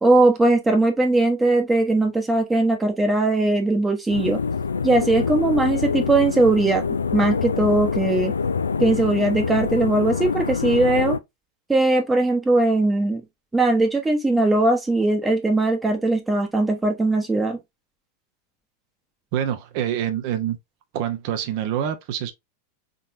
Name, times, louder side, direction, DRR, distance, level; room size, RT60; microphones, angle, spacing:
voice 1, 0.0-4.4 4.8-6.8 7.1-8.3 8.8-11.2 11.7-13.2 13.5-17.6, right 2 dB, 10° right, 0.9 m, -20 dB
sound 1, 4.1-11.2, left 5 dB, 75° left, 0.3 m, -25 dB
voice 2, 19.3-20.6 20.9-22.3, right 10 dB, 45° right, 0.7 m, -26 dB
4.2 x 3.8 x 2.6 m
figure-of-eight pair, 90°, 0 cm